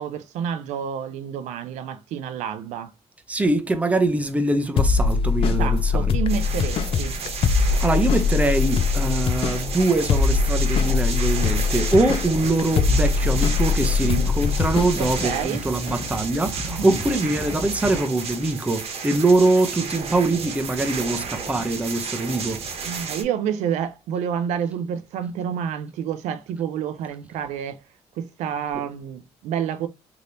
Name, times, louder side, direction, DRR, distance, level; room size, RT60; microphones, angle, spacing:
voice 1, 0.0-2.9 5.4-7.2 15.0-15.6 16.7-17.0 22.8-27.8 28.2-29.9, right 8 dB, 85° right, 0.5 m, -29 dB
voice 2, 3.3-6.2 7.6-22.6, right 2 dB, 10° right, 0.6 m, -23 dB
sound 1, 4.8-15.4, left 5 dB, 55° left, 0.5 m, -22 dB
sound 2, 6.3-23.2, right 5 dB, 60° right, 1.0 m, -33 dB
sound 3, 12.4-18.0, left 2 dB, 25° left, 1.2 m, -35 dB
3.3 x 2.9 x 2.6 m
cardioid pair, 105°, 12 cm